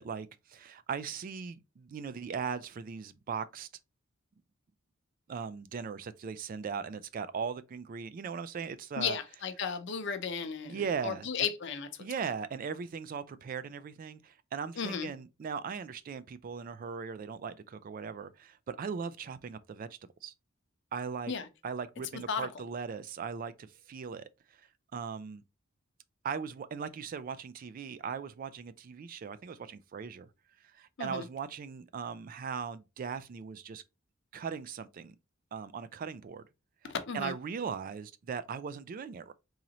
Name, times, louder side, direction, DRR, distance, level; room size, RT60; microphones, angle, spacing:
voice 1, 0.0-3.7 5.3-9.2 10.7-11.5 12.0-19.9 20.2-20.3 20.9-21.3 21.6-25.4 26.2-30.3 30.6-33.8 34.3-35.1 35.5-36.4 36.8-39.3, right 6 dB, 45° right, 0.3 m, -39 dB
voice 2, 9.0-12.1 14.8-15.1 21.3-21.5 22.3-22.5 31.0-31.2 36.8-37.3, left 6 dB, 65° left, 0.7 m, -35 dB
3.9 x 3.0 x 2.8 m
head